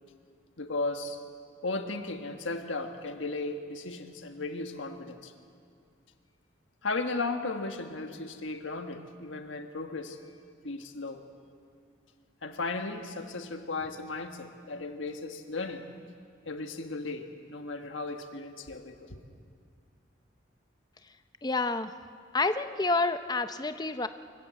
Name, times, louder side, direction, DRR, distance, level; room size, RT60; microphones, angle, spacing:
voice 1, 0.6-1.2 1.6-5.3 6.8-10.2 10.6-11.2 12.4-15.8 16.4-19.2, left 3 dB, 80° left, 6 dB, 1.5 m, -35 dB
voice 2, 21.4-21.9 22.3-24.1, left 3 dB, 20° left, 10 dB, 0.6 m, -28 dB
25.0 x 16.0 x 7.6 m, 2.3 s
head